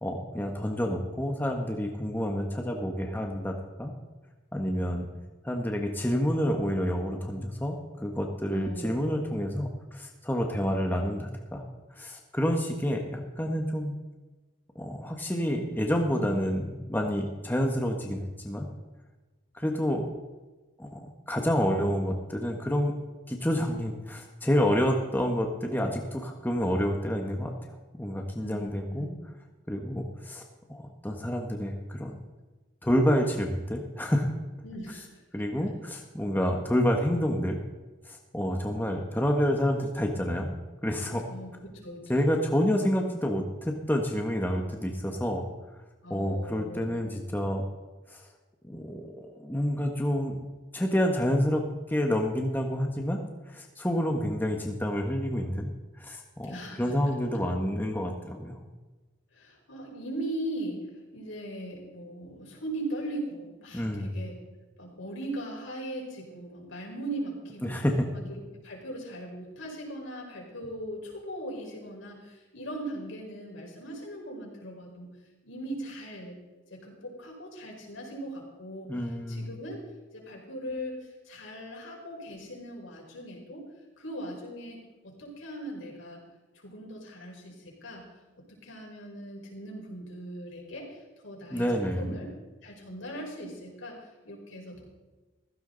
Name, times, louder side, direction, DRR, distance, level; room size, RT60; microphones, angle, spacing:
voice 1, 0.0-3.9 4.5-5.1 5.4-11.6 11.9-13.9 14.7-18.7 19.5-20.1 20.8-22.9 23.3-27.5 28.0-29.1 29.7-30.4 30.7-32.2 32.8-34.3 35.3-37.6 38.0-40.5 40.8-41.2 42.1-45.4 46.1-47.6 48.1-48.3 48.6-50.4 50.7-51.6 51.9-53.2 53.5-55.7 56.0-58.6 63.7-64.1 67.6-67.9 78.9-79.5 91.5-92.2, equal, 10° left, 2 dB, 1.3 m, -28 dB
voice 2, 8.5-9.4 28.4-29.1 34.6-35.2 35.6-35.7 41.3-42.4 46.0-46.9 56.5-57.2 59.3-60.8 61.1-64.4 64.8-67.9 68.1-75.1 75.4-76.4 76.7-78.9 79.3-79.8 80.1-83.7 84.0-86.2 86.5-88.1 88.4-92.3 92.6-94.9, right 1 dB, 85° left, -1 dB, 5.0 m, -39 dB
15.5 x 15.5 x 4.0 m, 1.2 s
head